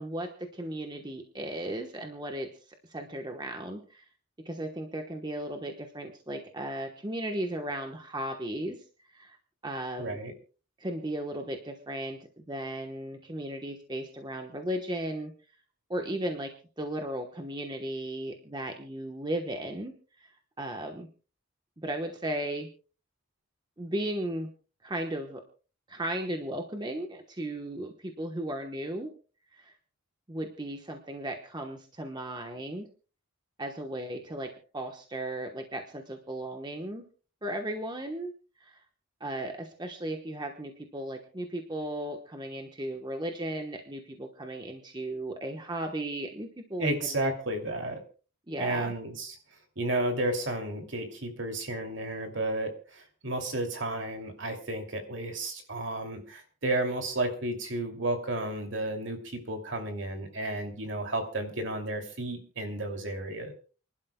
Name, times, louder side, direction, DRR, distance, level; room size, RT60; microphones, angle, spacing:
voice 1, 0.0-4.1 4.4-8.8 9.1-9.4 9.6-10.2 10.8-15.3 15.9-16.5 16.8-21.1 21.8-22.7 23.8-24.5 24.8-25.4 25.9-29.1 29.5-29.7 30.3-32.9 33.6-37.0 37.4-38.3 38.6-38.8 39.2-47.3 48.5-48.9, right 1 dB, 20° right, 3 dB, 1.1 m, -36 dB
voice 2, 10.0-10.3 46.8-48.0 48.6-49.4 49.8-63.5, right 1 dB, 60° right, 4 dB, 2.7 m, -32 dB
29.0 x 11.5 x 2.3 m, 0.37 s
head